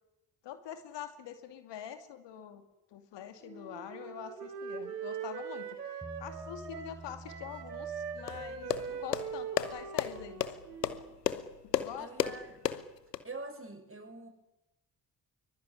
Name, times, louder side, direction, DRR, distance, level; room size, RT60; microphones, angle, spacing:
voice 1, 0.4-2.6 2.9-10.5 11.6-12.3, left 9 dB, 60° left, 8 dB, 2.6 m, -45 dB
Wind instrument woodwind instrument, 3.4-11.1, right 6 dB, 85° right, 3.3 m, -42 dB
Bass guitar, 6.0-9.4, right 2 dB, 5° right, 4.0 m, -50 dB
sound 1, 8.3-13.2, left 9 dB, 90° left, 1.0 m, -34 dB
voice 2, 12.0-12.6 13.2-14.3, right 3 dB, 25° right, 5 dB, 7.1 m, -44 dB
23.5 x 22.5 x 10.0 m, 0.96 s
figure-of-eight pair, 40°, 47 cm